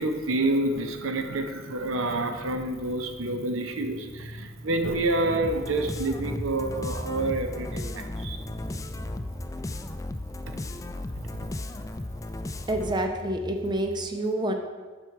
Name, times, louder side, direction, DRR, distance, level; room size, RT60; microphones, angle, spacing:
voice 1, 0.0-8.4 10.5-10.6, right 2 dB, 80° right, 6 dB, 0.8 m, -28 dB
sound 1, 1.9-13.8, equal, 40° right, 2.2 m, -42 dB
sound 2, 5.4-13.1, left 2 dB, 15° left, 0.4 m, -35 dB
voice 2, 12.7-14.5, right 1 dB, 20° right, 3 dB, 0.7 m, -28 dB
12.0 x 4.4 x 4.6 m, 1.4 s
head